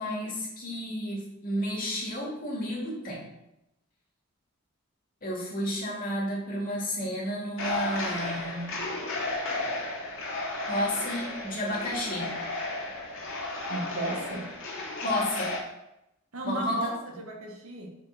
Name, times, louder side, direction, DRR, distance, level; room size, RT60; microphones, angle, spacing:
voice 1, 0.0-3.2 5.2-8.7 10.7-12.3 15.0-15.5 16.4-16.8, equal, 40° left, -3 dB, 2.3 m, -32 dB
sound 1, 7.6-15.6, left 2 dB, 70° left, 2.2 m, -33 dB
voice 2, 13.7-14.5 16.3-17.9, right 1 dB, 85° right, 2 dB, 1.5 m, -34 dB
5.5 x 5.1 x 5.9 m, 0.88 s
head